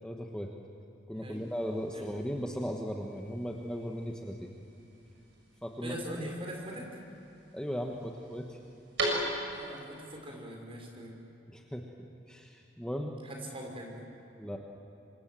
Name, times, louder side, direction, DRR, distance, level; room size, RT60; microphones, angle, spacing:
voice 1, 0.0-0.5 1.1-4.5 5.6-6.0 7.5-8.6 11.5-11.8 12.3-13.1 14.4-14.6, equal, 5° left, 1 dB, 1.3 m, -37 dB
sound 1, 1.3-9.8, right 1 dB, 65° right, 7.3 m, -41 dB
voice 2, 5.8-6.9 9.5-11.1 13.2-14.0, equal, 30° right, 0 dB, 5.3 m, -42 dB
26.5 x 26.5 x 7.7 m, 2.8 s
head